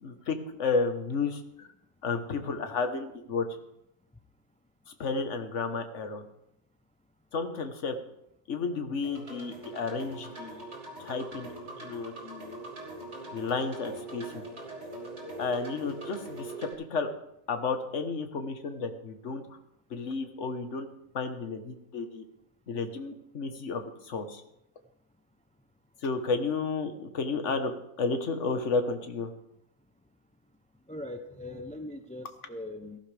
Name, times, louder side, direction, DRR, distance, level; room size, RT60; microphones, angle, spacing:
voice 1, 0.0-1.7 2.0-3.4 4.9-6.2 7.3-7.9 8.5-11.5 11.8-12.6 13.3-14.4 15.4-17.1 17.5-19.4 19.9-20.9 21.1-22.2 22.7-24.4 26.0-29.3, left 4 dB, 55° left, 7 dB, 1.5 m, -32 dB
sound 1, 9.0-16.7, right 2 dB, 45° right, 3.0 m, -42 dB
voice 2, 30.9-33.0, left 1 dB, 10° left, 7 dB, 0.3 m, -40 dB
17.5 x 15.0 x 3.4 m, 0.79 s
omnidirectional pair, 1.5 m